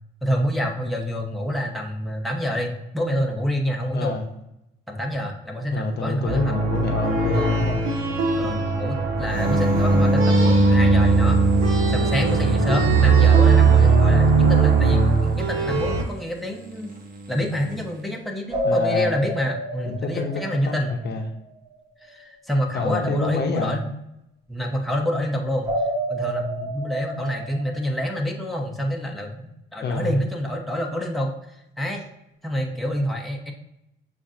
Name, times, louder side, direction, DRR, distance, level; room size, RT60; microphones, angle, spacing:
voice 1, 0.2-4.2 4.9-6.8 7.1-7.3 8.4-11.4 11.9-16.9 17.3-20.9 22.0-23.9 24.5-25.7 26.1-31.3 31.8-32.1 32.4-33.5, equal, ahead, 0 dB, 0.8 m, -27 dB
voice 2, 3.9-4.3 5.7-7.9 8.4-8.7 18.6-19.2 19.9-21.2 22.7-23.8 29.8-30.1, left 3 dB, 55° left, 3 dB, 0.7 m, -28 dB
sound 1, 6.3-16.0, right 5 dB, 85° right, 0.9 m, -20 dB
sound 2, 9.3-13.9 17.2-17.7, right 1 dB, 45° right, 1.0 m, -21 dB
sound 3, 13.7-15.8 18.5-21.4 25.6-27.9, right 1 dB, 15° right, 1.3 m, -30 dB
6.9 x 2.5 x 2.5 m, 0.84 s
cardioid pair, 90°, 20 cm